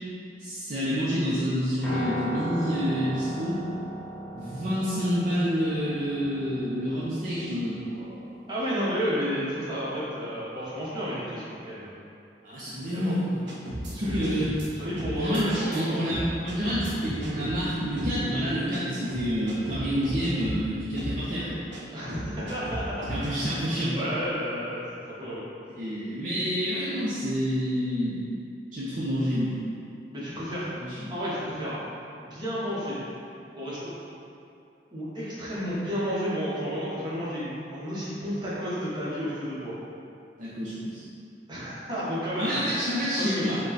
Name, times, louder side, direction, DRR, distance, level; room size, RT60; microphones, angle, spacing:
voice 1, 0.4-3.6 4.3-8.2 12.4-13.2 13.9-14.5 15.1-21.6 22.0-22.1 23.1-24.0 25.8-28.2 28.7-29.6 30.8-31.2 40.4-41.0 42.4-43.6, equal, 50° right, -9 dB, 0.6 m, -28 dB
Piano, 1.8-10.1, equal, 5° left, 1.2 m, -38 dB
voice 2, 8.5-11.9 12.9-13.1 13.9-14.4 14.7-16.2 21.9-23.1 23.4-23.6 23.9-25.4 30.1-30.7 31.1-31.8 32.2-33.0 33.6-33.9 34.9-39.8 41.5-42.6 43.2-43.5, equal, 25° right, -9 dB, 1.1 m, -32 dB
sound 1, 13.5-14.7 15.0-15.8 16.1-17.6 18.0-18.2 18.7-18.8 19.1-20.6 21.0-21.2 21.7-21.8 22.1-23.3, right 1 dB, 85° right, 0.8 m, -35 dB
5.2 x 2.3 x 4.0 m, 2.5 s
head